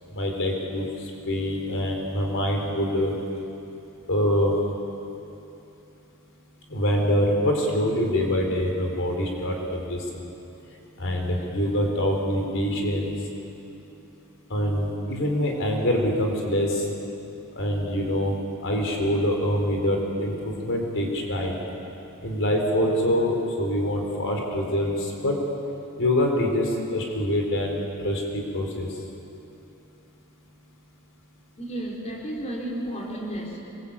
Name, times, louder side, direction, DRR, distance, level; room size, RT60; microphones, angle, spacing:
voice 1, 0.1-0.9 1.3-3.1 4.1-4.5 6.7-10.0 11.0-13.1 14.5-16.9 17.6-18.3 18.6-21.6 22.2-25.4 26.0-28.9, equal, 60° left, 1 dB, 4.0 m, -25 dB
voice 2, 31.6-33.6, right 1 dB, 30° left, -2 dB, 4.0 m, -32 dB
25.5 x 23.0 x 8.6 m, 2.9 s
head